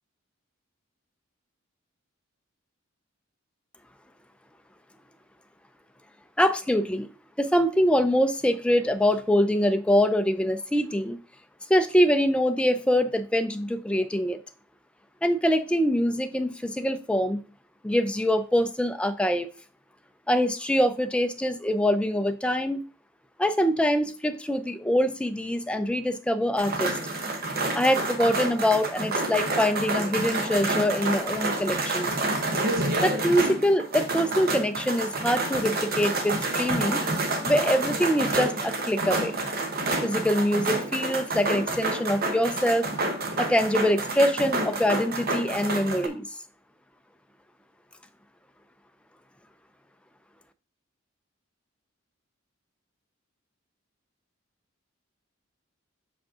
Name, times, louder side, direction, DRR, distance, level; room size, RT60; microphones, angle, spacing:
voice 1, 6.4-7.1 7.4-11.2 11.7-14.4 15.2-17.4 17.8-19.5 20.3-22.8 23.4-27.0 27.7-32.1 33.0-37.0 37.4-39.4 40.0-42.9 43.4-46.3, equal, 5° left, 0.4 m, -24 dB
sound 1, 26.6-46.1, right 2 dB, 45° right, 0.9 m, -29 dB
6.0 x 5.0 x 3.6 m
head